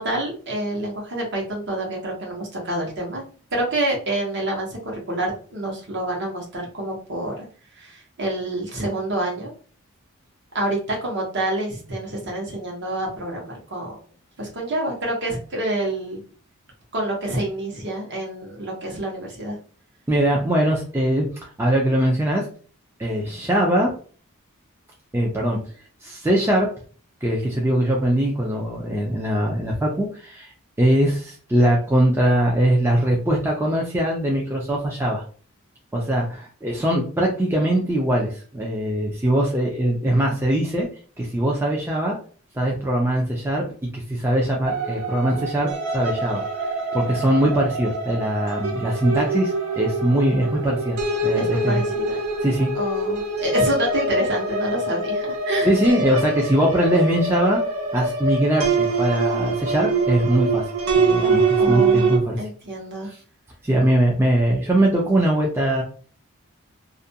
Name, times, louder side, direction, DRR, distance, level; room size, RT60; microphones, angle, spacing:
voice 1, 0.0-3.2 3.5-7.4 7.8-9.5 10.5-14.0 14.4-16.2 16.9-19.6 51.4-52.2 52.7-55.7 61.6-63.1, right 1 dB, 50° right, -1 dB, 0.9 m, -27 dB
voice 2, 20.1-22.5 23.0-23.9 25.1-25.6 26.0-26.7 27.2-35.2 35.9-40.9 41.2-42.2 42.5-43.6 43.9-46.4 46.9-51.8 52.4-52.7 55.6-57.6 57.9-60.6 60.9-62.4 63.1-63.2 63.6-65.8, right 1 dB, 10° right, -2 dB, 0.3 m, -21 dB
sound 1, 44.7-62.2, right 3 dB, 75° right, 0.6 m, -24 dB
2.4 x 2.1 x 2.7 m, 0.42 s
head